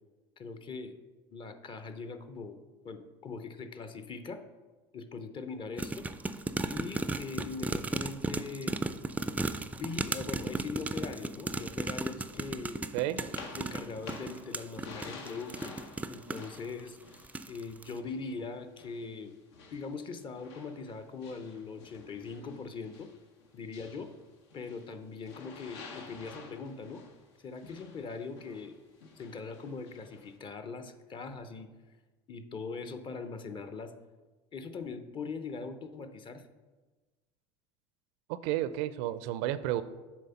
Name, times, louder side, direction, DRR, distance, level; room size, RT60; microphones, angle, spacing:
voice 1, 0.4-1.0 1.3-2.6 2.8-4.4 4.9-6.1 6.6-8.8 9.6-12.8 13.5-15.7 16.1-17.0 17.5-19.3 19.7-23.1 23.5-24.1 24.5-27.0 27.4-28.8 29.2-31.7 32.3-33.9 34.5-36.4, left 4 dB, 35° left, 9 dB, 0.7 m, -41 dB
sound 1, 5.8-16.6 17.1-17.6 17.8-17.9, right 3 dB, 10° right, 0.3 m, -35 dB
sound 2, 12.3-18.4 18.8-25.0 25.3-30.4, left 4 dB, 85° left, 0.9 m, -51 dB
voice 2, 38.3-39.8, right 13 dB, 75° right, 14 dB, 0.4 m, -31 dB
7.3 x 3.5 x 5.7 m, 1.2 s
supercardioid pair, 100°, 14 cm